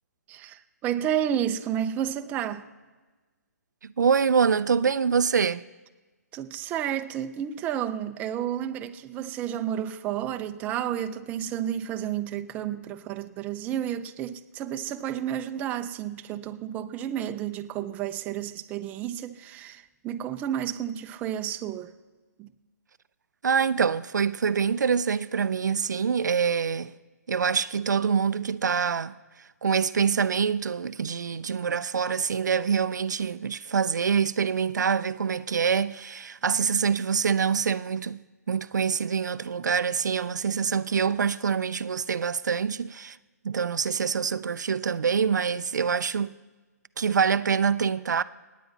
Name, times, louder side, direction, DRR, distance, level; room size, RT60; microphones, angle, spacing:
voice 1, 0.3-2.7 6.3-21.9 22.4-22.5, right 10 dB, 15° right, 0.5 m, -31 dB
voice 2, 3.8-5.6 23.4-26.9 27.3-38.2 38.5-43.2 43.4-46.4 47.0-48.2, right 6 dB, 85° right, 0.4 m, -25 dB
27.0 x 9.3 x 4.0 m
hypercardioid pair, 150°, 9 cm